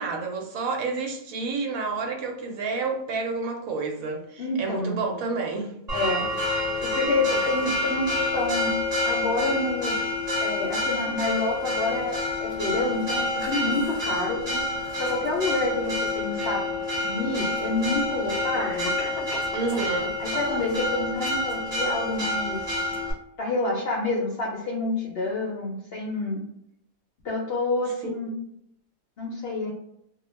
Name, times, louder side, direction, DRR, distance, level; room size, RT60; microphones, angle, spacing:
voice 1, 0.0-5.7 19.5-20.2 28.1-28.4, right 4 dB, 75° right, 1 dB, 1.0 m, -30 dB
voice 2, 4.4-5.0 5.9-6.2 6.8-8.7 9.0-10.0 10.4-14.6 15.0-16.6 17.0-18.9 20.2-22.7 23.4-26.4 27.2-28.3 29.2-29.7, left 2 dB, 60° left, -3 dB, 0.6 m, -28 dB
Church bell, 5.9-23.1, left 2 dB, 35° right, 0.8 m, -28 dB
Cough, 16.8-16.9 17.9-18.0 18.5-20.0 20.3-20.9, left 3 dB, 90° left, 1.1 m, -37 dB
2.3 x 2.2 x 3.0 m, 0.77 s
omnidirectional pair, 1.5 m